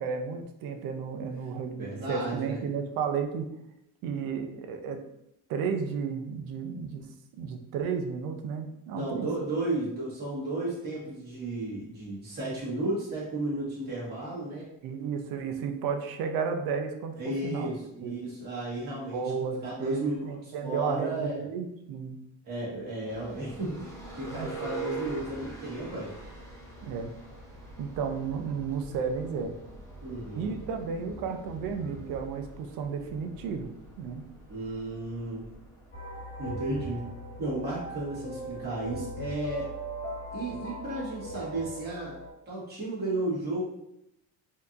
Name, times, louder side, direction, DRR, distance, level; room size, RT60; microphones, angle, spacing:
voice 1, 0.0-3.5 4.0-5.0 5.5-7.1 7.4-9.3 14.8-17.7 18.0-18.2 19.1-22.2 24.3-24.5 26.8-27.1 27.8-29.5 30.4-33.7 34.0-34.3, right 6 dB, 75° right, 5 dB, 0.6 m, -33 dB
voice 2, 1.8-2.6 8.9-14.7 17.2-21.4 22.4-26.1 30.0-30.5 34.5-35.4 36.4-37.1 37.4-39.7 40.3-42.1 42.5-43.6, right 2 dB, 30° right, -8 dB, 1.5 m, -33 dB
sound 1, 23.0-40.6, right 4 dB, 10° left, 0.6 m, -45 dB
sound 2, 35.9-42.3, right 1 dB, 45° left, 0.9 m, -39 dB
4.5 x 2.8 x 2.5 m, 0.81 s
cardioid pair, 175°, 35 cm